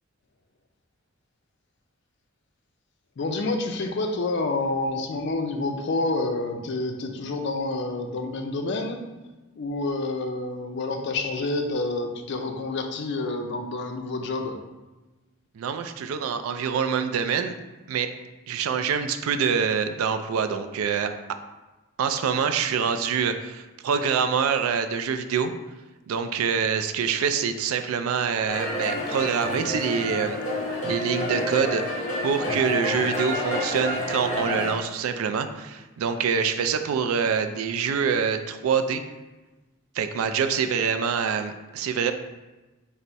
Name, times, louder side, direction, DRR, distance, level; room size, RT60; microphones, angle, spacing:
voice 1, 3.2-9.0 9.6-14.6, left 2 dB, 55° left, 5 dB, 0.4 m, -28 dB
voice 2, 15.6-17.5 17.9-18.1 18.5-21.1 22.0-25.5 26.1-30.4 30.8-31.8 32.2-39.0 40.0-42.1, right 6 dB, 80° right, 8 dB, 0.3 m, -25 dB
sound 1, 28.5-34.7, left 1 dB, 35° left, 0.8 m, -29 dB
4.0 x 2.1 x 4.4 m, 1.1 s
head